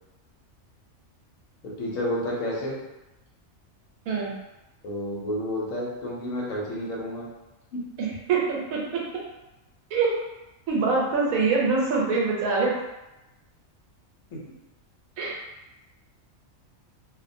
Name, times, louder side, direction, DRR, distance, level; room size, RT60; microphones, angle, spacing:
voice 1, 1.6-2.8 4.8-7.3 7.7-8.0 14.3-14.5, left 1 dB, 75° left, -4 dB, 1.0 m, -30 dB
voice 2, 8.0-9.0 9.9-10.2 10.7-12.8 15.2-15.4, right 4 dB, 85° right, -3 dB, 1.1 m, -24 dB
2.5 x 2.1 x 2.5 m, 1.0 s
omnidirectional pair, 1.4 m